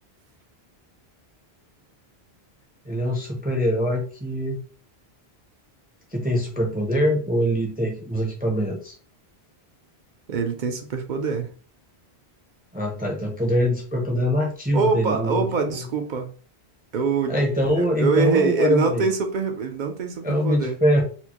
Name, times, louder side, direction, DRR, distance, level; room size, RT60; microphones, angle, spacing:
voice 1, 2.9-4.6 6.1-9.0 12.7-15.8 17.3-19.1 20.2-21.0, equal, 10° right, 0.5 m, -23 dB
voice 2, 10.3-11.5 14.7-16.3 16.9-17.4 17.8-20.8, right 4 dB, 55° right, 0.6 m, -24 dB
4.2 x 2.1 x 2.9 m
omnidirectional pair, 1.1 m